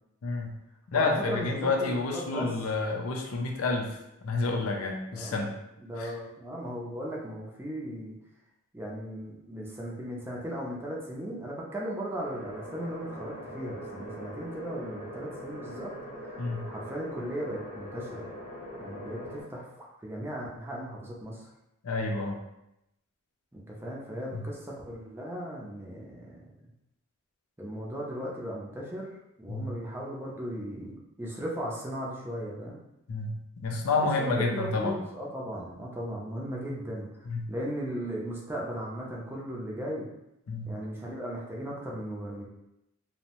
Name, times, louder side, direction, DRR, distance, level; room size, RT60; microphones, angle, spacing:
voice 1, 0.2-0.5 0.9-4.0 4.2-5.5 6.0-6.1 16.4-16.7 21.8-22.4 24.3-24.4 29.5-29.7 33.1-35.0 37.3-37.5 40.5-40.8, left 3 dB, 80° left, 2 dB, 0.4 m, -29 dB
voice 2, 0.9-2.5 5.1-8.2 8.7-16.4 16.6-18.3 18.8-21.5 23.5-26.4 27.6-32.8 34.0-37.1 37.5-40.1 40.7-42.5, equal, 10° right, -4 dB, 0.4 m, -37 dB
sound 1, 12.2-19.4, equal, 35° left, 0.8 m, -42 dB
2.6 x 2.0 x 2.8 m, 0.86 s
head